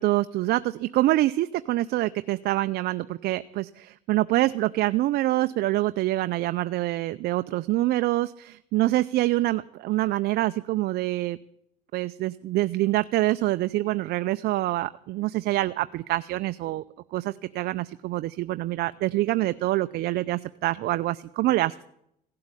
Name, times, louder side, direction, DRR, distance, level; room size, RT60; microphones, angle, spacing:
voice 1, 0.0-11.4 11.9-16.8 17.1-21.7, right 16 dB, 70° right, 12 dB, 0.5 m, -25 dB
16.0 x 7.8 x 9.7 m, 0.75 s
cardioid pair, 110°, 17 cm